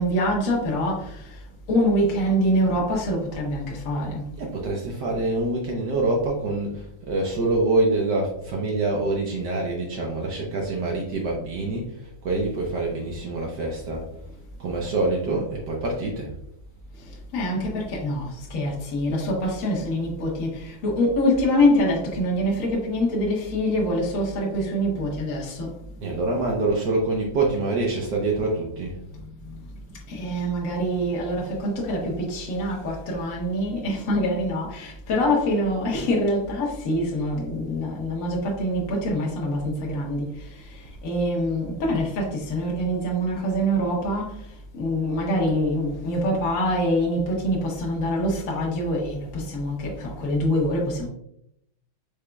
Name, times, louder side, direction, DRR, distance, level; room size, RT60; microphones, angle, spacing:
voice 1, 0.0-1.4 1.7-4.3 17.0-25.8 29.4-29.6 30.1-44.5 44.7-51.1, equal, 50° left, 1.2 m, -25 dB
voice 2, 4.4-14.1 14.6-16.3 26.0-28.9, right 2 dB, 65° right, 1.2 m, -25 dB
5.0 x 4.1 x 2.3 m
omnidirectional pair, 2.3 m